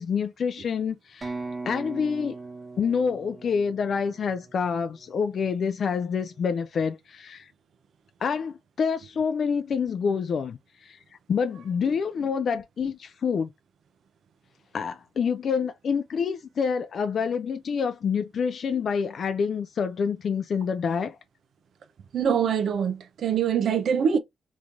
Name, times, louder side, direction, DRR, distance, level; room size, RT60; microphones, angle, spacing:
voice 1, 0.0-1.3 1.7-2.4 2.8-7.5 8.2-11.0 11.3-13.5 14.7-21.2, left 6 dB, 55° left, 0.4 m, -27 dB
sound 1, 1.2-5.0, right 3 dB, 30° right, 1.4 m, -39 dB
voice 2, 22.1-24.2, right 7 dB, 70° right, 0.6 m, -24 dB
3.6 x 3.0 x 2.5 m
cardioid pair, 105°, 0 cm